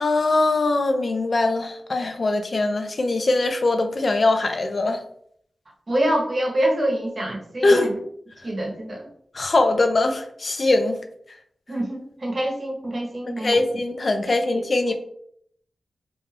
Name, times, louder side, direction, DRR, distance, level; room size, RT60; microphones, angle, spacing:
voice 1, 0.0-5.0 7.6-7.9 9.3-11.0 13.4-14.9, left 2 dB, 50° left, 6 dB, 0.4 m, -21 dB
voice 2, 5.9-8.0 8.4-9.1 11.7-13.6 14.5-14.6 14.9-15.0, right 1 dB, 45° right, -1 dB, 0.8 m, -25 dB
2.4 x 2.3 x 3.2 m, 0.67 s
wide cardioid pair, 110°, 0 cm